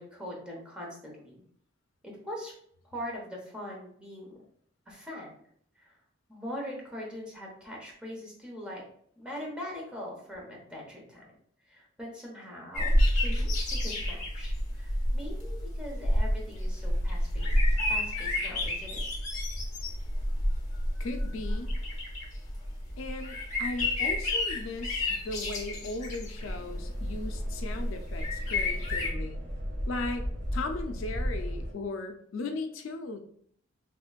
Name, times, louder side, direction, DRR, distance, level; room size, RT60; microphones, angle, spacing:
voice 1, 0.0-1.4 2.0-2.5 2.8-4.4 4.9-5.3 5.7-6.0 6.3-8.8 9.1-11.3 11.6-17.5 17.9-19.0, equal, 5° right, -3 dB, 1.0 m, -42 dB
sound 1, 12.7-29.1, left 1 dB, 35° left, 0.8 m, -30 dB
voice 2, 21.0-21.7 23.0-29.4 29.9-33.2, left 3 dB, 80° left, 6 dB, 0.4 m, -37 dB
sound 2, 26.4-31.7, equal, 85° right, 1.1 m, -35 dB
3.4 x 3.0 x 2.4 m, 0.63 s
head